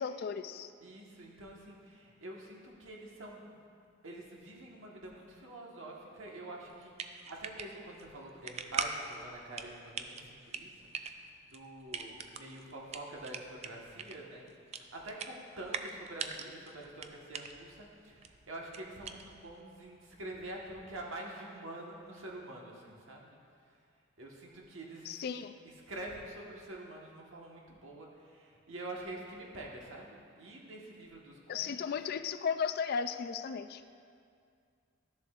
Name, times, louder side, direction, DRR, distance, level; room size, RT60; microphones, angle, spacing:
voice 1, 0.0-0.7 25.0-25.6 31.5-33.8, left 6 dB, 50° left, 10 dB, 0.3 m, -35 dB
voice 2, 0.8-3.5 4.0-10.7 11.5-23.4 24.2-25.2 25.9-31.8, right 1 dB, 85° right, -2 dB, 1.3 m, -46 dB
sound 1, 6.7-19.6, right 6 dB, 35° right, 0.3 m, -43 dB
13.0 x 7.1 x 2.4 m, 2.3 s
head